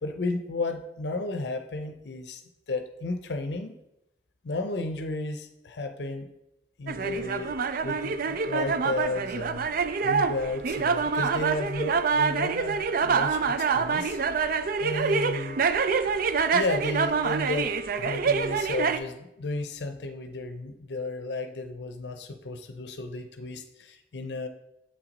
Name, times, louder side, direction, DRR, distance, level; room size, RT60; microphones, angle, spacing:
voice 1, 0.0-2.4 2.7-3.8 4.4-6.3 6.8-7.5 7.8-9.7 10.0-14.2 14.8-15.6 16.5-24.5, left 2 dB, 75° left, 7 dB, 0.6 m, -33 dB
sound 1, 6.9-19.0, right 5 dB, 55° right, 0.4 m, -26 dB
7.4 x 5.9 x 4.0 m, 0.89 s
head